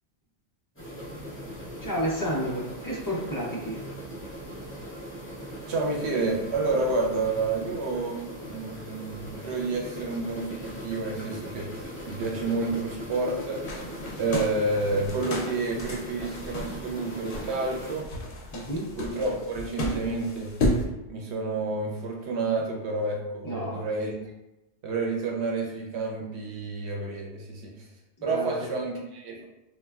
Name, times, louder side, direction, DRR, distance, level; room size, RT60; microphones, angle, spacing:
sound 1, 0.8-18.0, equal, 15° left, 0.7 m, -40 dB
voice 1, 1.8-3.8 18.5-19.0 23.4-23.9 28.2-28.7, equal, 35° left, -4 dB, 0.3 m, -31 dB
voice 2, 5.7-18.1 19.0-20.5 21.1-24.1 24.8-27.9 28.2-29.4, right 3 dB, 90° right, -1 dB, 0.9 m, -29 dB
sound 2, 13.6-20.8, left 1 dB, 65° left, 0.7 m, -33 dB
3.1 x 2.2 x 2.3 m, 0.95 s
omnidirectional pair, 1.1 m